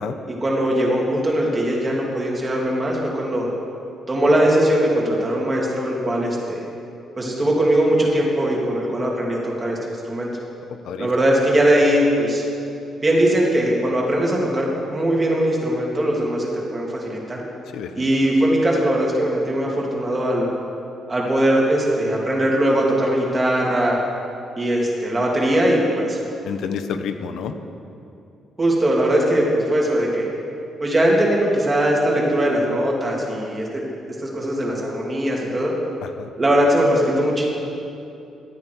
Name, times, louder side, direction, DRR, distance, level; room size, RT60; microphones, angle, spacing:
voice 1, 0.3-3.5 4.1-6.6 7.2-9.8 10.0-10.3 11.0-12.4 13.0-17.4 18.0-20.5 21.1-24.0 24.6-26.2 28.6-30.3 30.8-33.8 34.2-35.7 36.4-37.4, right 1 dB, 20° right, -2 dB, 2.7 m, -20 dB
voice 2, 17.7-18.1 26.4-27.5 36.0-36.3, left 7 dB, 75° left, 8 dB, 1.0 m, -29 dB
18.5 x 13.5 x 4.7 m, 2.7 s
cardioid pair, 170°, 0 cm